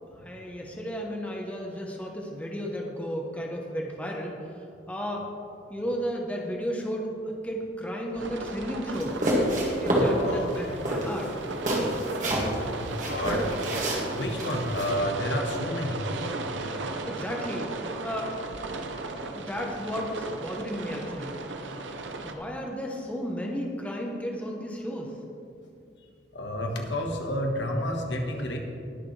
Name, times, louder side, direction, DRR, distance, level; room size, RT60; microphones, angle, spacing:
voice 1, 0.2-4.3 4.9-5.3 5.7-9.2 9.8-11.4 17.1-17.7 18.0-18.3 19.3-21.3 22.2-25.1, equal, 5° left, -1 dB, 0.9 m, -33 dB
sound 1, 8.1-22.3, right 2 dB, 90° right, 0.8 m, -36 dB
sound 2, 8.9-10.1 10.5-10.6 10.8-12.6 13.0-14.9, equal, 40° right, 2.0 m, -27 dB
voice 2, 9.9-10.5 12.7-13.4 14.1-16.0 26.3-28.6, left 1 dB, 75° left, 2 dB, 1.4 m, -30 dB
20.0 x 6.7 x 3.3 m, 2.5 s
head